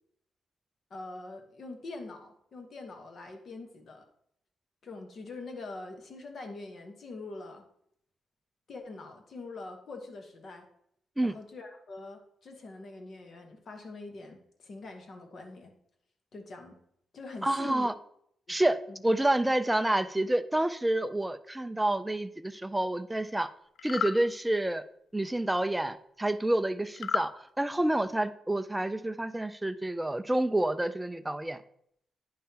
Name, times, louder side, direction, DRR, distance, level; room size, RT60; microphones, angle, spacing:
voice 1, 0.9-4.0 4.8-7.6 8.7-10.7 11.2-15.7 16.3-16.8 17.1-17.9 18.5-18.6 18.9-19.0, left 3 dB, 45° left, 4 dB, 1.1 m, -44 dB
voice 2, 17.4-17.9 18.5-18.8 19.0-23.5 23.8-24.8 25.1-31.6, right 1 dB, 5° right, 10 dB, 0.3 m, -28 dB
sound 1, 23.8-24.2 27.0-27.3, left 8 dB, 65° left, 0.4 m, -31 dB
10.0 x 5.6 x 2.8 m, 0.71 s
wide cardioid pair, 155°, 0 cm